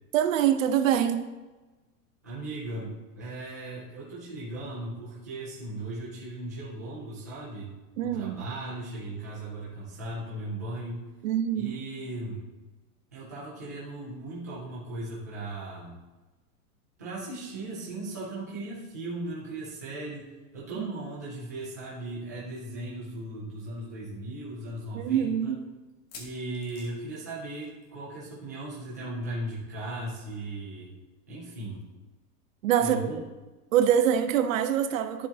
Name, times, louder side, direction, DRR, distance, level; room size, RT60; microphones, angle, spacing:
voice 1, 0.1-1.3 8.0-8.5 11.2-11.8 20.8-20.9 24.9-25.6 32.6-33.1 33.7-35.3, right 9 dB, 55° right, 9 dB, 0.7 m, -25 dB
voice 2, 2.2-7.7 8.0-11.1 11.5-12.4 13.1-16.0 17.0-25.5 26.2-30.9 31.3-31.8 32.8-33.2, right 2 dB, 15° right, -9 dB, 0.3 m, -37 dB
sound 1, 23.2-23.3 23.6-23.7 24.3-24.4 25.9-28.0 28.3-28.5 28.8-28.9 30.3-30.4, left 4 dB, 80° left, 2.6 m, -50 dB
11.5 x 6.9 x 2.8 m, 1.2 s
supercardioid pair, 180°, 48 cm